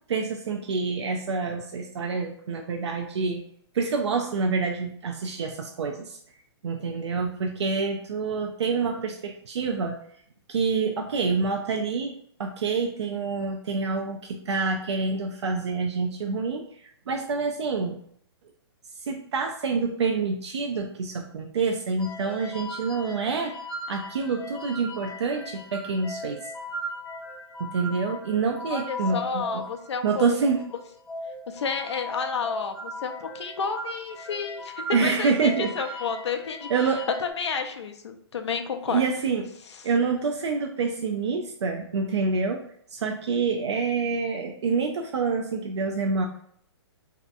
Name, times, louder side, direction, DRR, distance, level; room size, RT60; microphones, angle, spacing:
voice 1, 0.1-3.4 3.7-6.2 6.6-10.0 10.5-12.1 12.4-18.0 19.0-23.5 23.9-26.4 27.6-29.6 30.0-30.6 34.9-35.7 36.7-37.0 38.9-39.5 39.8-42.6 42.9-46.2, right 4 dB, 80° right, 2 dB, 0.4 m, -27 dB
sound 1, 22.0-37.3, left 1 dB, 5° left, 0.5 m, -38 dB
voice 2, 28.7-30.2 31.5-36.9 37.2-39.0, left 5 dB, 80° left, 6 dB, 0.5 m, -31 dB
2.7 x 2.2 x 2.5 m, 0.65 s
hypercardioid pair, 135°, 14 cm